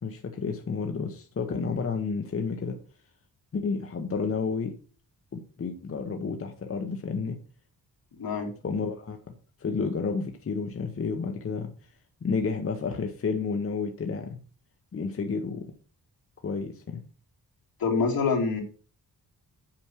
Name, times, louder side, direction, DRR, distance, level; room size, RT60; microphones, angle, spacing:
voice 1, 0.0-2.8 3.5-4.7 5.3-7.4 8.6-9.3 9.6-11.9 12.2-14.4 14.9-15.7 16.4-17.0, left 5 dB, 35° left, 4 dB, 0.9 m, -31 dB
voice 2, 8.2-8.5 17.8-18.6, left 5 dB, 70° left, 1 dB, 3.0 m, -25 dB
8.7 x 6.1 x 6.2 m, 0.39 s
wide cardioid pair, 175°, 37 cm